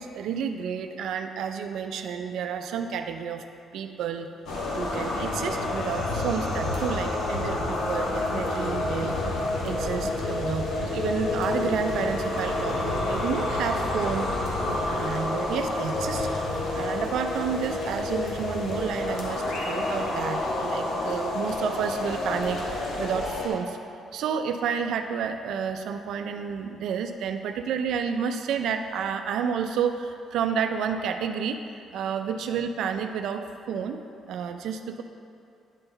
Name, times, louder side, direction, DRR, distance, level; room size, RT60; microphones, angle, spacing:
voice 1, 0.0-3.4 3.7-4.3 4.7-9.2 9.6-16.3 16.7-23.8 24.1-31.6 31.9-34.0 34.3-35.0, right 7 dB, 80° right, 7 dB, 0.4 m, -30 dB
sound 1, 4.5-23.5, left 2 dB, 85° left, 1.2 m, -29 dB
9.8 x 3.8 x 4.0 m, 2.5 s
cardioid pair, 90°, 0 cm